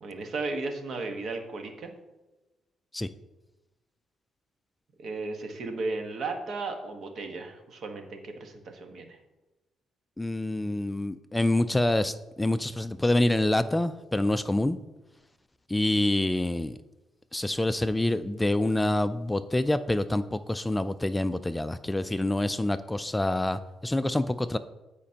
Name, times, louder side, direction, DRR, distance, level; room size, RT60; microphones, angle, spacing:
voice 1, 0.0-1.9 5.0-9.2, right 3 dB, 60° right, 5 dB, 1.3 m, -35 dB
voice 2, 10.2-14.8 15.7-16.8 17.3-24.6, left 1 dB, 10° left, 12 dB, 0.3 m, -26 dB
14.0 x 5.1 x 2.9 m, 1.1 s
cardioid pair, 90°, 0 cm